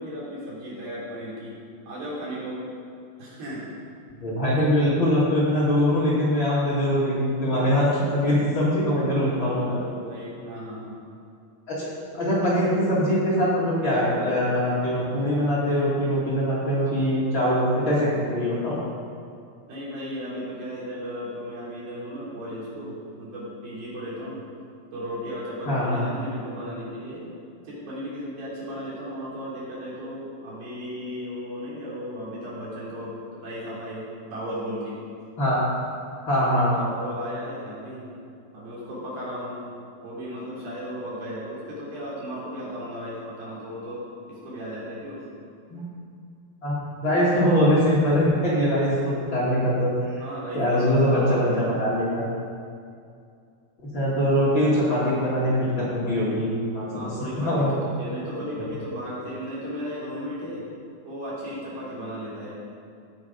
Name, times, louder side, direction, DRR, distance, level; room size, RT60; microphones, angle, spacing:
voice 1, 0.0-1.6 1.8-2.6 3.2-3.7 9.0-11.0 19.7-24.4 24.9-27.2 27.6-33.1 33.4-35.0 36.6-38.0 38.5-39.6 40.0-45.2 50.2-51.7 56.9-60.7 61.0-62.5, equal, 75° right, -8 dB, 5.1 m, -35 dB
voice 2, 4.2-9.8 11.7-11.9 12.1-18.8 25.7-26.1 35.4-35.6 36.3-36.7 45.7-45.9 46.6-50.2 50.5-52.3 53.9-57.1 57.4-57.7, equal, 40° left, -8 dB, 2.3 m, -22 dB
16.5 x 5.8 x 5.2 m, 2.4 s
omnidirectional pair, 4.3 m